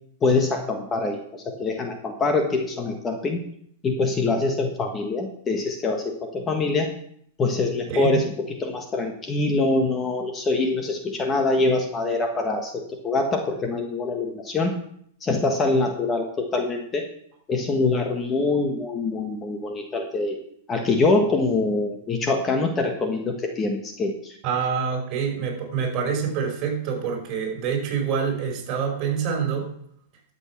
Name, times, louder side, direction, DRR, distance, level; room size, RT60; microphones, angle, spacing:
voice 1, 0.2-3.4 3.8-6.9 7.4-14.7 15.2-17.1 17.5-20.4 20.7-24.4, left 3 dB, 20° left, 3 dB, 1.4 m, -24 dB
voice 2, 24.4-29.7, right 6 dB, 35° right, 2 dB, 5.1 m, -26 dB
12.0 x 8.3 x 5.9 m, 0.68 s
hypercardioid pair, 140°, 0 cm